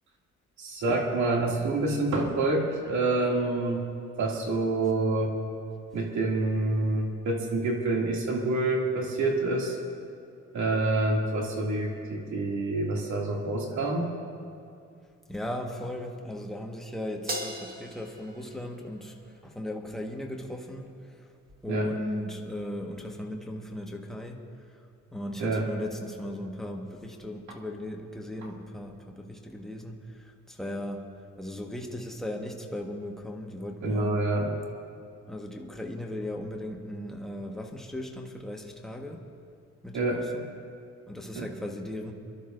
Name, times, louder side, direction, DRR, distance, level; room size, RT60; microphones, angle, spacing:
voice 1, 0.6-3.8 4.2-5.4 5.9-9.8 10.5-14.1 21.7-21.9 25.4-25.7 33.8-34.5 39.9-40.3 41.3-41.5, right 2 dB, 70° right, -1 dB, 2.5 m, -27 dB
voice 2, 15.3-21.3 21.6-24.4 25.1-31.1 31.4-34.1 35.3-39.2 39.8-40.5 41.1-42.1, left 1 dB, ahead, 0 dB, 1.4 m, -37 dB
Crash cymbal, 17.3-19.8, right 1 dB, 30° right, 1.7 m, -39 dB
27.0 x 12.0 x 2.6 m, 2.5 s
cardioid pair, 90°, 30 cm